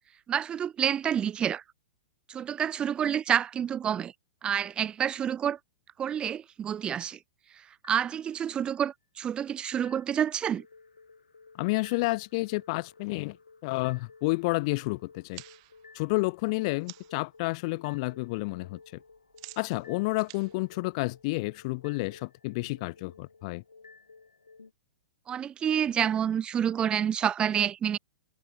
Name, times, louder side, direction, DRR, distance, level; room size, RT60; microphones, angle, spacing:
voice 1, 0.3-1.6 2.3-4.1 4.4-5.6 6.0-7.2 7.9-10.6 25.3-28.0, right 9 dB, 20° right, 1.1 m, -28 dB
sound 1, 7.8-8.8 9.8-24.7, left 4 dB, 85° left, 7.9 m, -55 dB
voice 2, 11.6-13.4 13.6-15.4 15.9-18.8 19.6-23.6, left 25 dB, 45° left, 0.3 m, -30 dB
sound 2, 15.1-17.3 17.6-18.1 18.3-21.6, right 26 dB, 45° right, 3.8 m, -51 dB
figure-of-eight pair, 110°, 4 cm